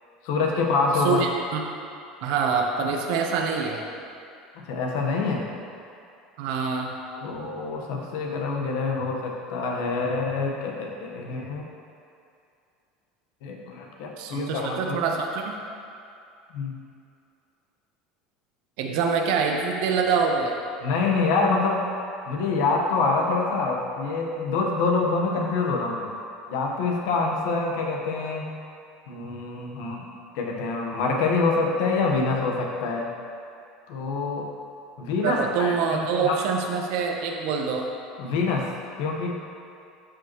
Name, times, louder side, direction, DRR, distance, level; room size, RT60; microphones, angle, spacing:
voice 1, 0.2-1.2 4.6-5.5 7.2-11.7 13.4-15.0 16.5-16.7 20.8-21.8 22.3-26.1 26.5-28.5 29.1-33.1 33.9-34.5 35.0-36.4 38.2-38.7 39.0-39.3, left 4 dB, 80° left, 0 dB, 1.2 m, -26 dB
voice 2, 1.0-1.6 2.2-3.8 6.4-6.9 14.2-15.6 18.8-20.6 35.2-37.9, right 5 dB, 70° right, 2 dB, 1.1 m, -25 dB
13.5 x 5.3 x 3.1 m, 2.5 s
cardioid pair, 145°, 0 cm